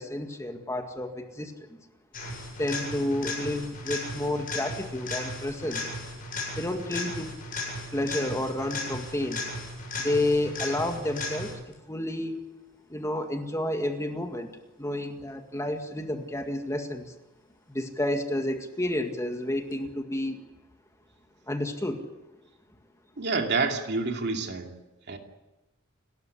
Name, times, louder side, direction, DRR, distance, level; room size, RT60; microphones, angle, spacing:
voice 1, 0.0-1.8 2.6-5.8 6.6-7.3 7.9-9.4 10.0-11.6 11.9-12.4 12.9-14.5 14.8-17.1 17.7-20.4 21.5-22.0, left 1 dB, 15° left, 5 dB, 2.0 m, -30 dB
sound 1, 2.1-11.7 19.7-19.8, left 2 dB, 40° left, 7.7 m, -36 dB
voice 2, 23.2-24.7 25.1-25.2, right 3 dB, 55° right, 4 dB, 2.7 m, -28 dB
29.5 x 13.5 x 9.9 m, 1.0 s
head